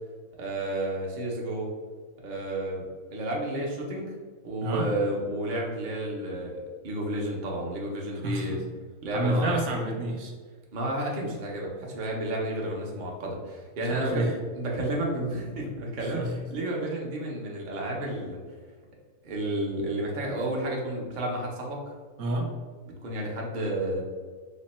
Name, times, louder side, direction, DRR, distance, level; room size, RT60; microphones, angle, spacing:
voice 1, 0.4-1.7 2.2-2.9 3.1-4.2 4.4-8.6 9.0-9.5 10.7-16.2 16.5-18.4 19.2-21.9 23.0-24.0, right 1 dB, 50° right, -2 dB, 0.5 m, -31 dB
voice 2, 8.2-8.6 9.1-10.3 13.9-14.3 16.1-16.3 22.2-22.5, right 1 dB, 70° right, 1 dB, 1.0 m, -29 dB
3.5 x 2.1 x 4.1 m, 1.5 s
omnidirectional pair, 1.6 m